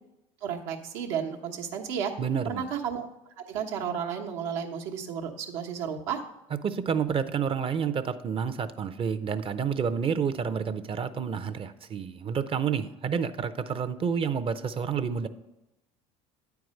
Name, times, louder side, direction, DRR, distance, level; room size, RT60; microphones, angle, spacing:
voice 1, 0.4-2.1 2.4-3.1 3.4-6.2, right 7 dB, 80° right, 1 dB, 1.1 m, -32 dB
voice 2, 2.2-2.7 6.6-15.3, right 7 dB, 35° right, 12 dB, 0.6 m, -29 dB
9.0 x 4.7 x 6.4 m, 0.92 s
supercardioid pair, 80°, 16 cm